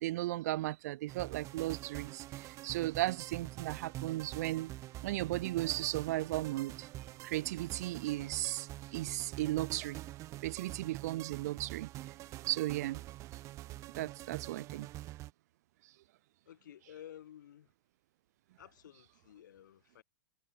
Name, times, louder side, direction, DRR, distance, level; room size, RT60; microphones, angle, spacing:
voice 1, 0.0-4.7 5.0-6.9 7.2-10.0 10.4-11.9 12.5-13.0 14.0-14.9, right 16 dB, 60° right, 1.4 m, -35 dB
sound 1, 1.1-15.3, right 16 dB, 30° right, 2.4 m, -46 dB
voice 2, 16.5-17.7 18.6-20.0, left 11 dB, 85° left, 6.1 m, -53 dB
supercardioid pair, 155°, 10 cm